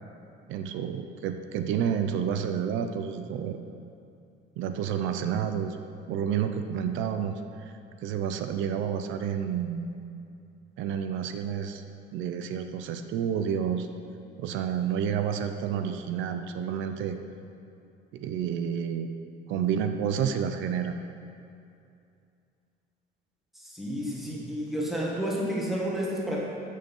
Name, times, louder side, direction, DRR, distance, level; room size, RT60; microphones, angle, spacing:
voice 1, 0.5-3.6 4.6-5.8 6.1-7.7 8.0-10.0 10.8-11.8 12.1-13.9 14.4-17.2 18.1-19.1 19.5-20.9, right 8 dB, 85° right, 7 dB, 0.7 m, -30 dB
voice 2, 23.6-26.4, equal, ahead, -5 dB, 1.8 m, -31 dB
13.5 x 6.5 x 5.5 m, 2.6 s
cardioid pair, 175°, 19 cm